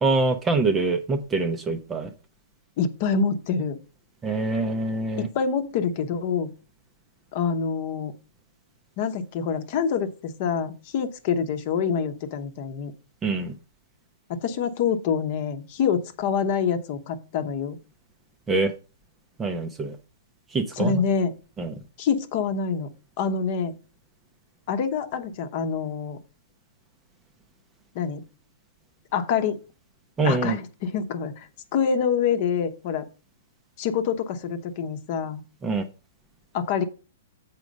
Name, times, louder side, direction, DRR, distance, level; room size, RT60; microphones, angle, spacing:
voice 1, 0.0-2.1 4.2-5.3 13.2-13.5 18.5-18.7 19.4-20.0 20.5-20.9 21.6-21.7 30.2-30.6 35.6-35.8, right 3 dB, 10° right, 8 dB, 0.7 m, -24 dB
voice 2, 2.8-3.8 5.2-6.5 7.3-8.1 9.0-12.9 14.3-17.8 20.8-21.3 22.0-22.9 23.2-23.7 24.7-26.2 27.9-28.2 29.1-29.6 30.2-33.0 33.8-35.4 36.5-36.8, left 6 dB, 40° left, 8 dB, 0.9 m, -26 dB
7.4 x 4.7 x 5.3 m, 0.34 s
hypercardioid pair, 160°, 0 cm